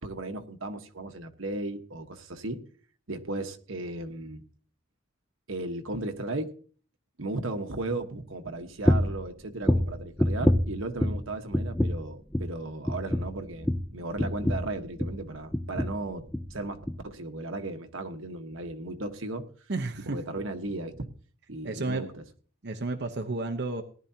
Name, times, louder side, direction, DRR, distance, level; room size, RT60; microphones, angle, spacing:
voice 1, 0.0-2.6 3.1-4.4 5.5-6.5 7.2-19.5 20.0-21.1 21.5-22.1, right 2 dB, 75° right, 1.3 m, -36 dB
sound 1, 8.8-9.2 9.6-11.3 11.5-12.1 12.3-12.6 12.9-15.2 15.5-16.0 16.3-16.5 16.9-17.0, left 1 dB, 5° left, 0.5 m, -26 dB
voice 2, 19.7-20.2 21.6-22.1 22.6-23.8, right 2 dB, 55° right, 0.9 m, -31 dB
18.5 x 11.5 x 2.8 m
head